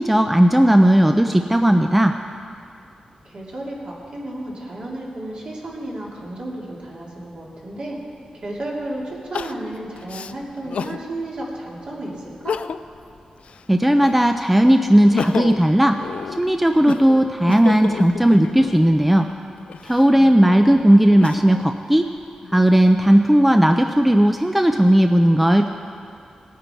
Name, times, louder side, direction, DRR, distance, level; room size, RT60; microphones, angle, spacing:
voice 1, 0.0-2.1 13.7-16.0 16.4-19.3 19.8-22.1 22.5-25.7, right 1 dB, 5° right, 5 dB, 0.4 m, -15 dB
voice 2, 3.2-8.0 8.3-12.6 20.1-20.8, right 1 dB, 55° right, -5 dB, 2.9 m, -33 dB
Crying sobbing, 8.0-8.1 9.3-11.0 11.6-11.7 12.3-13.0 13.4-14.4 14.9-18.9 19.6-21.7 22.2-23.0, left 6 dB, 70° left, 0.3 m, -31 dB
18.5 x 9.3 x 4.5 m, 2.4 s
wide cardioid pair, 120°, 2 cm